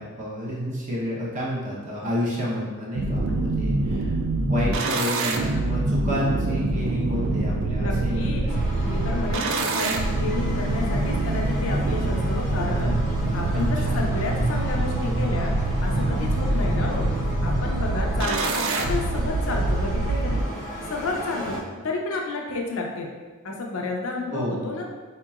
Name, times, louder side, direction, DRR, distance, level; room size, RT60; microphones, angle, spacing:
voice 1, 0.0-4.1 4.5-8.3 13.8-14.1 24.3-24.6, equal, 35° right, -6 dB, 0.8 m, -29 dB
sound 1, 2.9-20.4, right 2 dB, 60° right, 0.3 m, -25 dB
voice 2, 7.8-8.4 8.8-13.0 13.3-15.5 15.8-17.1 17.4-20.5 20.8-21.6 21.8-23.1 23.4-24.9, left 3 dB, 65° left, 0 dB, 0.5 m, -31 dB
sound 2, 8.5-21.6, equal, 5° left, 0.7 m, -35 dB
4.1 x 2.8 x 2.4 m, 1.4 s
head